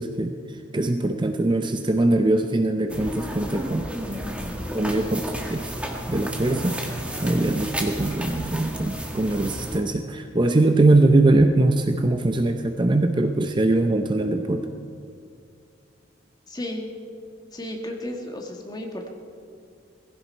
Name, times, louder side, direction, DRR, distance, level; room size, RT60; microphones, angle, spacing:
voice 1, 0.0-3.9 4.7-5.7 6.1-6.8 7.2-14.7, right 2 dB, 25° right, 6 dB, 0.6 m, -22 dB
sound 1, 2.9-9.8, equal, 5° right, 1.4 m, -32 dB
voice 2, 16.5-16.9 17.5-19.1, left 1 dB, 20° left, 2 dB, 1.7 m, -33 dB
18.5 x 15.5 x 4.5 m, 2.3 s
head